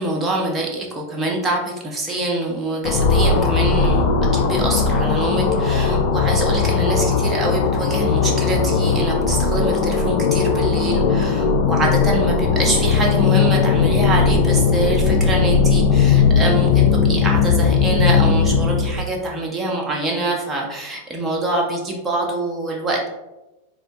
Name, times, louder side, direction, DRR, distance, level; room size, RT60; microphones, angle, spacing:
voice 1, 0.0-4.0 4.3-23.1, right 2 dB, 15° right, -1 dB, 0.7 m, -24 dB
sound 1, 2.8-19.0, left 5 dB, 50° left, 0.3 m, -18 dB
4.2 x 2.2 x 2.7 m, 1.0 s
figure-of-eight pair, 90°, 0 cm